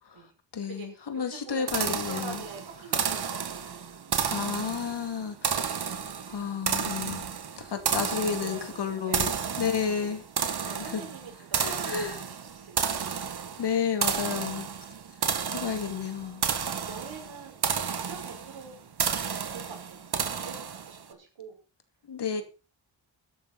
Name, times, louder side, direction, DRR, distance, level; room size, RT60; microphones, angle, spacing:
voice 1, 0.5-2.4 4.3-5.7 6.3-7.3 7.6-9.3 9.6-10.2 10.5-11.0 11.6-12.2 13.6-14.7 15.5-16.4 22.1-22.4, left 7 dB, 60° left, 2.6 m, -31 dB
voice 2, 1.1-3.9 7.9-9.4 10.0-10.2 10.6-13.1 16.2-18.8 19.5-20.1 20.4-21.6 22.3-22.4, right 5 dB, 80° right, 5.9 m, -45 dB
sound 1, 1.7-21.0, right 6 dB, 55° right, 1.8 m, -32 dB
13.5 x 11.5 x 4.2 m
cardioid pair, 90°, 45 cm